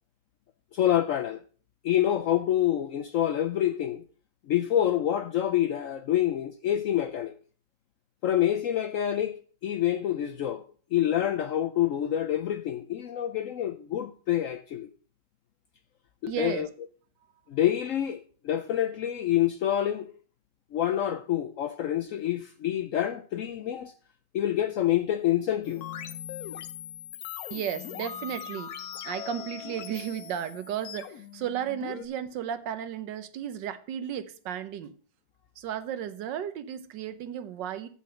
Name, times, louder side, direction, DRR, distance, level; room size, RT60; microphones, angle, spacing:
voice 1, 0.7-1.4 1.8-4.0 4.5-7.4 8.2-10.6 10.9-14.9 16.2-16.7 17.5-20.1 20.7-23.9 24.3-25.8, left 11 dB, 90° left, 0.7 m, -27 dB
voice 2, 16.3-16.7 27.5-34.9 35.6-37.9, right 10 dB, 70° right, 1.4 m, -34 dB
sound 1, 25.6-32.1, left 10 dB, 65° left, 1.0 m, -40 dB
8.2 x 5.7 x 6.2 m
omnidirectional pair, 2.0 m